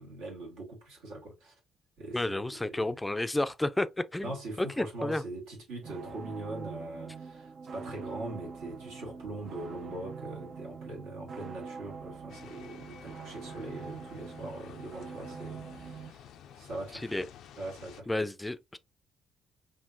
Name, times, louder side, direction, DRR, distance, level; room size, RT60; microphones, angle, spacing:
voice 1, 0.0-1.5 2.0-2.9 4.2-16.3 16.5-17.3 17.6-18.3, right 2 dB, 70° right, 1.8 m, -42 dB
voice 2, 2.1-4.3 4.6-5.2 17.0-17.2 18.1-18.8, left 1 dB, 15° left, 0.5 m, -31 dB
St. Petersglocke., 5.8-16.1, right 5 dB, 50° right, 0.6 m, -44 dB
sound 1, 12.3-18.0, left 9 dB, 65° left, 0.4 m, -52 dB
5.3 x 2.7 x 2.6 m
figure-of-eight pair, 45°, 0 cm